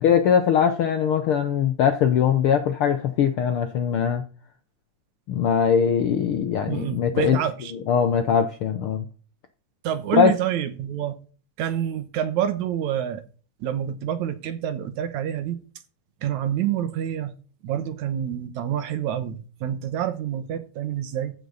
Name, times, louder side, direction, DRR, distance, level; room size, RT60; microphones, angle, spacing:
voice 1, 0.0-4.2 5.3-7.4 7.9-9.0 10.1-10.3, left 7 dB, 70° left, 8 dB, 1.3 m, -21 dB
voice 2, 6.7-7.7 9.8-11.1 11.6-13.2 13.6-15.6 16.2-17.4 17.6-21.3, right 10 dB, 75° right, 11 dB, 2.4 m, -27 dB
14.5 x 6.0 x 4.0 m, 0.37 s
omnidirectional pair, 3.5 m